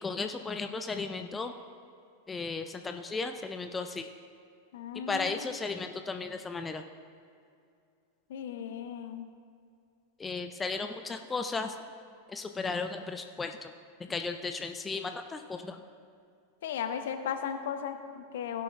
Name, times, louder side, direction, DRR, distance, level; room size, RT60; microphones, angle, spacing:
voice 1, 0.0-1.5 2.3-4.1 5.1-6.8 10.2-11.8 12.3-13.7 14.0-15.8, left 4 dB, 15° left, 7 dB, 0.4 m, -35 dB
voice 2, 4.7-5.6 8.3-9.3 16.6-18.6, left 8 dB, 55° left, 8 dB, 0.7 m, -36 dB
16.0 x 10.5 x 2.2 m, 2.4 s
figure-of-eight pair, 90°, 0 cm